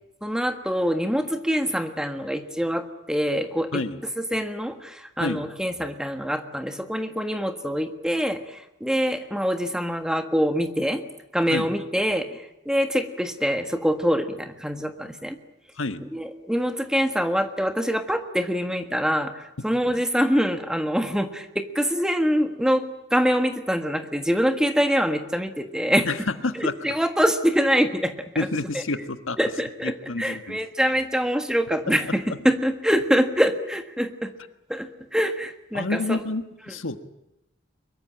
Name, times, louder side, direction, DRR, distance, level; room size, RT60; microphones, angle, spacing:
voice 1, 0.2-3.8 4.2-11.0 11.3-15.4 16.0-22.8 23.1-26.1 26.5-28.5 28.7-28.8 29.4-34.3 34.7-36.2, equal, 5° right, 6 dB, 1.5 m, -25 dB
voice 2, 26.1-26.7 28.4-29.4 29.8-30.6 31.9-32.0 32.3-32.4 35.7-37.0, left 3 dB, 85° left, 9 dB, 1.5 m, -28 dB
23.0 x 22.5 x 8.8 m, 0.92 s
head